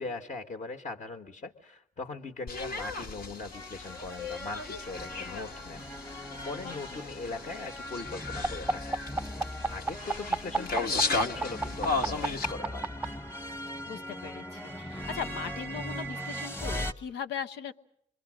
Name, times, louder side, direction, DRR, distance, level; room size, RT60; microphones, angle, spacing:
voice 1, 0.0-9.0 9.7-12.9, left 3 dB, 45° left, 3 dB, 1.5 m, -40 dB
sound 1, 2.5-12.5, left 3 dB, 60° left, 1.4 m, -35 dB
sound 2, 3.5-16.9, left 1 dB, 15° left, 1.2 m, -40 dB
sound 3, 8.4-13.1 14.2-16.5, right 4 dB, 10° right, 0.8 m, -32 dB
voice 2, 13.9-17.7, left 7 dB, 80° left, 9 dB, 0.8 m, -39 dB
26.5 x 22.0 x 6.4 m, 0.73 s
supercardioid pair, 50°, 17 cm